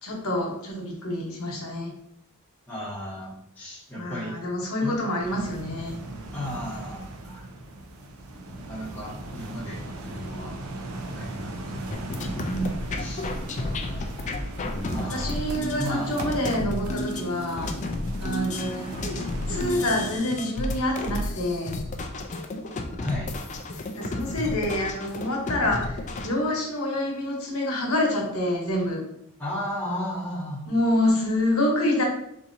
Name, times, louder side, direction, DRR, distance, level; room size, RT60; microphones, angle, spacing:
voice 1, 0.0-1.9 4.0-6.0 12.4-12.8 15.0-17.8 18.2-18.9 19.5-21.8 23.8-29.0 30.7-32.0, left 1 dB, 90° left, -1 dB, 1.0 m, -27 dB
voice 2, 2.7-4.4 4.8-4.9 6.3-7.4 8.5-10.5 11.1-11.8 12.2-12.6 13.0-13.3 14.6-15.3 15.8-16.1 23.0-23.3 29.4-30.7, left 1 dB, 10° left, -8 dB, 0.8 m, -34 dB
sound 1, 5.2-20.2, right 2 dB, 85° right, 0.5 m, -38 dB
sound 2, 11.9-26.3, left 2 dB, 35° left, 0.3 m, -32 dB
4.0 x 2.7 x 2.6 m, 0.76 s
head